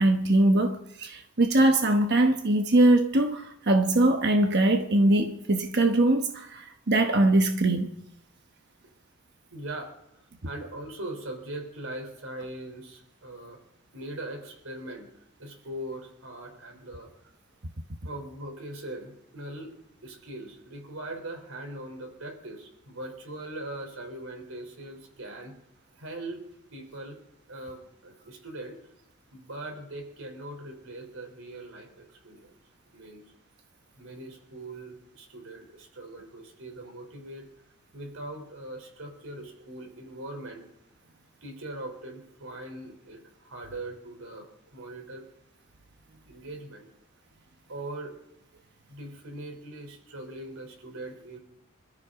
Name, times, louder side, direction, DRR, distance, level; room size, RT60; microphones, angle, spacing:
voice 1, 0.0-7.9, right 1 dB, 50° right, 1.1 m, -22 dB
voice 2, 9.5-13.6 13.9-15.1 15.4-17.3 18.0-19.7 20.0-25.5 26.0-27.2 27.5-28.9 29.3-32.5 32.9-33.2 34.0-37.5 37.9-40.7 41.4-45.3 46.3-46.9 47.7-48.2 48.9-51.4, right 1 dB, 75° right, 3.6 m, -41 dB
27.5 x 13.5 x 3.7 m
head